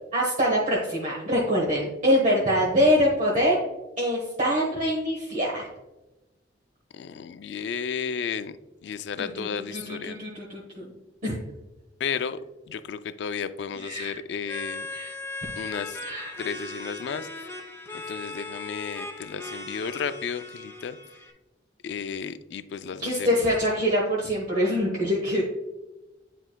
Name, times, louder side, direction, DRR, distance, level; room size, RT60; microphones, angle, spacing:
voice 1, 0.1-3.6 4.0-5.6 9.2-10.9 11.2-11.4 13.7-14.2 14.9-15.1 16.0-16.4 23.0-25.4, equal, 45° right, -3 dB, 1.2 m, -24 dB
voice 2, 6.9-8.6 8.8-10.2 12.0-12.4 12.7-14.9 15.5-16.0 16.4-17.5 17.9-21.0 21.8-23.4, left 6 dB, 70° left, 12 dB, 0.3 m, -33 dB
sound 1, 14.5-21.3, left 2 dB, 15° left, 0.5 m, -38 dB
9.8 x 4.6 x 2.2 m, 1.0 s
head